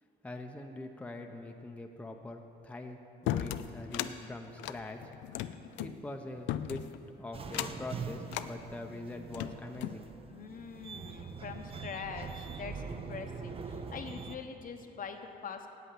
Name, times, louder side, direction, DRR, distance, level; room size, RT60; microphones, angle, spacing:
voice 1, 0.2-5.2 5.8-6.9 7.2-10.1, left 2 dB, 5° left, 3 dB, 0.7 m, -43 dB
sound 1, 3.3-4.1 4.6-5.9 6.5-7.0 7.5-7.9 8.3-8.5 9.1-10.0, left 12 dB, 90° left, 0.4 m, -36 dB
voice 2, 3.5-4.4 5.5-6.2 10.3-15.7, left 6 dB, 50° left, 5 dB, 0.9 m, -44 dB
sound 2, 7.3-14.4, right 5 dB, 30° right, 0.6 m, -43 dB
8.4 x 8.4 x 7.6 m, 2.7 s
cardioid pair, 100°, 19 cm